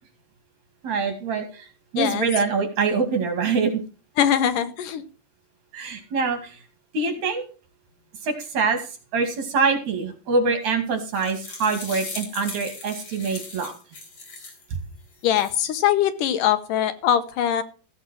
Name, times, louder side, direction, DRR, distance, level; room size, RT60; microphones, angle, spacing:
voice 1, 0.8-1.7 1.9-3.8 5.7-6.6 6.9-7.4 8.2-8.8 9.1-13.7, right 4 dB, 55° right, 6 dB, 3.3 m, -24 dB
voice 2, 2.0-2.3 4.2-5.0 15.2-17.6, left 10 dB, 70° left, 11 dB, 2.3 m, -22 dB
sound 1, 10.9-14.7 15.1-15.7, left 3 dB, 40° left, 4.1 m, -38 dB
15.0 x 8.1 x 4.4 m, 0.37 s
omnidirectional pair, 4.4 m